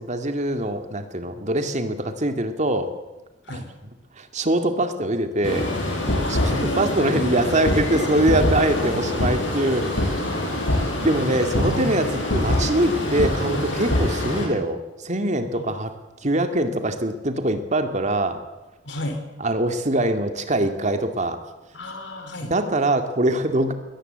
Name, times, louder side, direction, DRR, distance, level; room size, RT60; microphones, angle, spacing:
voice 1, 0.0-2.9 4.2-5.7 6.3-10.1 11.0-15.9 16.2-18.4 19.4-21.4 22.5-23.7, right 1 dB, 40° right, 7 dB, 2.3 m, -23 dB
sound 1, 5.4-14.4, left 1 dB, 90° left, 7.5 m, -24 dB
voice 2, 6.2-6.9 11.6-12.0 15.5-15.7 18.8-19.2 21.7-22.5, left 1 dB, 70° left, 6 dB, 4.4 m, -32 dB
22.0 x 18.5 x 8.1 m, 1.1 s
head